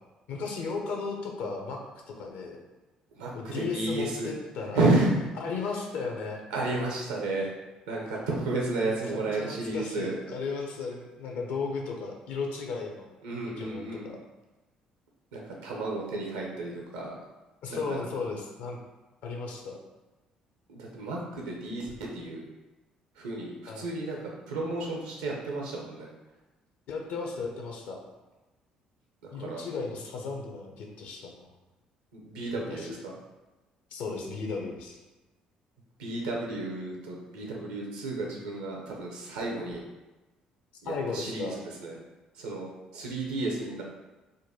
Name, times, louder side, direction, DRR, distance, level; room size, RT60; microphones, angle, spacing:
voice 1, 0.3-1.8 2.1-2.6 3.3-4.8 5.4-6.4 8.8-13.1 13.6-14.2 17.6-18.8 19.2-19.8 23.7-23.9 26.9-28.0 29.3-31.4 32.7-32.9 33.9-35.0 40.8-41.6, left 4 dB, 65° left, 1 dB, 0.6 m, -35 dB
voice 2, 3.2-4.3 4.7-5.1 6.5-7.5 7.9-10.2 13.2-14.1 15.3-17.1 17.7-18.0 20.7-22.5 23.2-26.1 29.2-29.6 32.1-33.1 36.0-39.8 40.8-41.5 41.8-42.0 42.4-43.8, right 2 dB, 80° right, -1 dB, 0.7 m, -32 dB
3.7 x 2.2 x 2.8 m, 1.1 s
hypercardioid pair, 50°, 3 cm